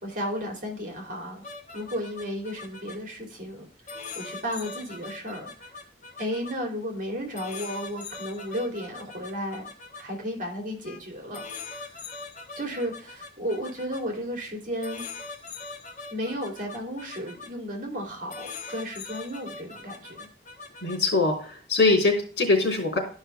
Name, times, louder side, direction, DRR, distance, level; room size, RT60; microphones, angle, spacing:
voice 1, 0.0-1.4 1.7-3.7 4.2-5.5 6.2-9.7 10.0-11.4 11.7-11.9 12.5-15.0 16.1-20.3, equal, 50° right, 2 dB, 2.8 m, -33 dB
sound 1, 1.4-3.0 3.9-6.5 7.4-10.0 10.8-11.0 11.3-14.0 14.8-17.5 18.3-21.0, left 4 dB, 45° left, 1.3 m, -41 dB
voice 2, 20.8-23.0, left 3 dB, 70° left, 0 dB, 3.5 m, -22 dB
12.0 x 5.5 x 3.4 m, 0.42 s
head